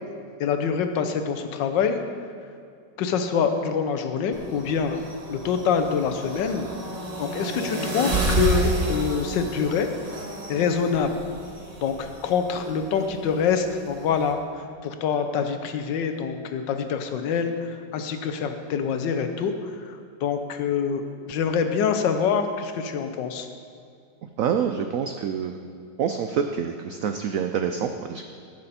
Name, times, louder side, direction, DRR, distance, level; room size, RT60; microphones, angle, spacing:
voice 1, 0.4-2.0 3.0-5.0 5.3-6.7 7.2-9.9 10.5-11.1 11.8-23.5, left 6 dB, 80° left, 7 dB, 1.4 m, -25 dB
sound 1, 4.3-14.3, right 2 dB, 25° right, 0.9 m, -31 dB
voice 2, 24.4-25.6 26.0-28.2, right 7 dB, 80° right, 6 dB, 0.7 m, -26 dB
15.5 x 6.6 x 4.2 m, 2.3 s
omnidirectional pair, 2.0 m